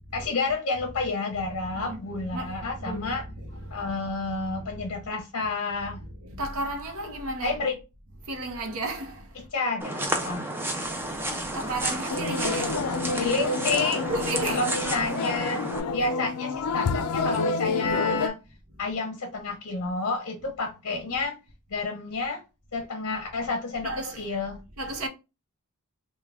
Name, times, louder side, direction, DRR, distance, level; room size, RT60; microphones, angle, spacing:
voice 1, 0.1-3.2 3.7-6.0 7.4-7.7 9.5-10.5 13.1-14.1 14.4-18.4 18.8-21.4 21.7-22.4 22.7-24.6, left 3 dB, 60° left, 0.7 m, -30 dB
voice 2, 1.7-3.9 4.6-4.7 5.8-7.7 8.3-9.3 11.5-12.9 14.0-14.6 20.9-21.3 23.8-24.3 24.8-25.1, right 2 dB, 70° right, 0.8 m, -34 dB
sound 1, 9.8-15.8, right 1 dB, 10° right, 0.4 m, -31 dB
sound 2, 12.1-18.3, left 3 dB, 90° left, 0.4 m, -29 dB
3.5 x 2.2 x 3.3 m
head